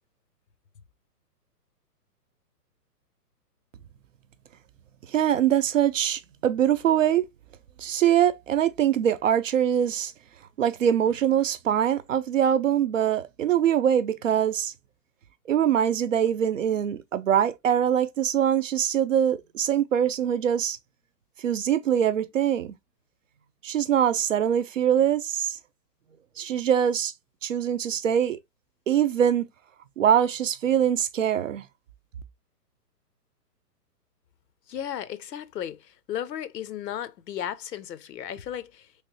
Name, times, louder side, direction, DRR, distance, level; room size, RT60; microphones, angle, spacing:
voice 1, 5.1-7.3 7.8-10.1 10.6-14.7 15.5-20.8 21.4-22.7 23.6-25.6 26.4-27.1 27.4-28.4 28.9-29.5 30.0-31.6, right 9 dB, 55° right, 0.5 m, -23 dB
voice 2, 34.7-38.9, left 10 dB, 90° left, 0.7 m, -35 dB
3.2 x 3.1 x 2.9 m
hypercardioid pair, 165°, 48 cm